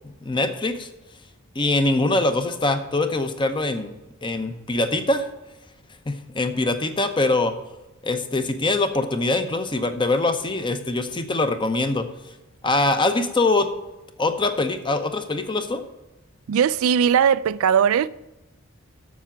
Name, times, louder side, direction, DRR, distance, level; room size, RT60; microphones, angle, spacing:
voice 1, 0.2-0.9 1.6-3.9 4.2-5.3 6.1-7.5 8.0-12.1 12.6-13.7 14.2-15.8, left 2 dB, 25° left, 0.7 m, -23 dB
voice 2, 16.5-18.1, right 8 dB, 75° right, 0.3 m, -19 dB
7.2 x 6.8 x 7.3 m
head